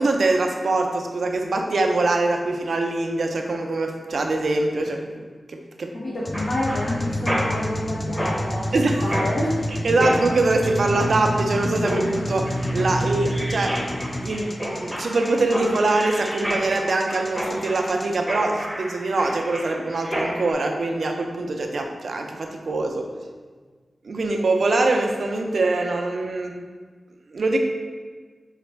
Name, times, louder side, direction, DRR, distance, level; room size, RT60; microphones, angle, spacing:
voice 1, 0.0-5.9 8.7-9.2 9.8-13.8 14.2-23.1 24.0-26.5 27.3-27.6, right 2 dB, 75° right, 3 dB, 0.4 m, -23 dB
voice 2, 5.9-8.7 9.0-9.5, left 1 dB, 70° left, -8 dB, 0.6 m, -28 dB
sound 1, 6.3-18.2, equal, 25° left, 0.4 m, -28 dB
Mechanisms, 6.3-20.5, equal, 5° left, 0.8 m, -31 dB
4.0 x 2.1 x 4.4 m, 1.5 s
wide cardioid pair, 80°, 0 cm